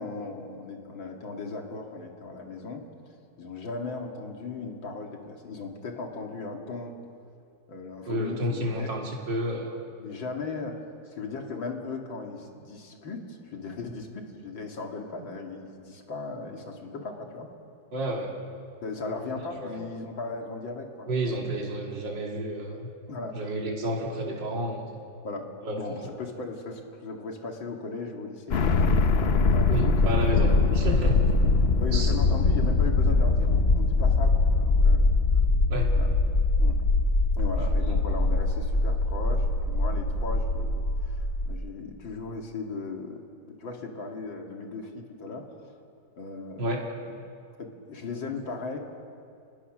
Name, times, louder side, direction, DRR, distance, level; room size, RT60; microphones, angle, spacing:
voice 1, 0.0-2.8 3.4-6.9 7.7-8.9 10.0-17.5 18.8-21.3 23.1-23.4 25.2-28.9 29.2-30.9 31.8-35.1 35.9-36.1 36.6-36.8 37.4-43.2 43.5-45.5 46.2-46.8 47.6-48.8, left 3 dB, 80° left, 2 dB, 3.0 m, -37 dB
voice 2, 8.1-9.8 17.9-18.3 19.6-19.8 21.1-22.9 23.3-25.0 25.6-26.1 29.7-31.3 31.9-32.2 35.7-35.9 37.6-38.0 46.6-46.8, right 1 dB, 70° right, -1 dB, 3.3 m, -31 dB
sound 1, 28.5-41.5, left 3 dB, 50° left, 0.7 m, -22 dB
29.0 x 21.0 x 6.3 m, 2.4 s
omnidirectional pair, 2.1 m